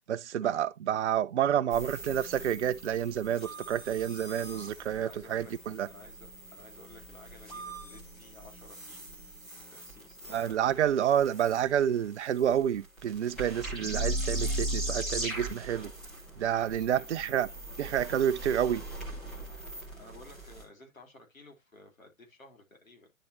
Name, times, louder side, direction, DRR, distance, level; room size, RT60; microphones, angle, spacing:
voice 1, 0.1-5.9 10.3-15.9 16.4-17.5 17.8-18.8, right 9 dB, 60° right, 0.5 m, -29 dB
sound 1, 1.7-20.6, right 1 dB, ahead, 0.5 m, -39 dB
voice 2, 5.0-5.5 5.9-9.1 9.7-10.6 16.5-17.1 19.6-23.1, left 2 dB, 80° left, 3.3 m, -54 dB
9.9 x 4.1 x 3.0 m
figure-of-eight pair, 135°, 40 cm